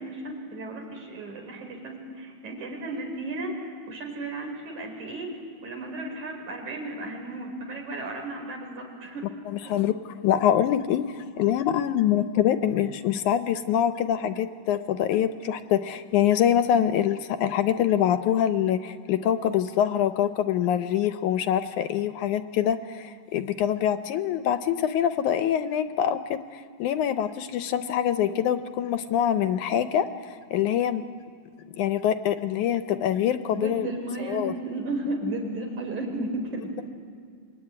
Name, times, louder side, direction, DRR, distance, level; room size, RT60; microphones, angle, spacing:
voice 1, 0.0-9.3 9.6-9.8 33.5-36.9, right 2 dB, 60° right, 2 dB, 6.0 m, -34 dB
voice 2, 9.5-31.0 31.8-33.9 34.3-34.5, left 10 dB, 75° left, 10 dB, 2.1 m, -25 dB
26.5 x 23.0 x 9.8 m, 2.2 s
omnidirectional pair, 3.8 m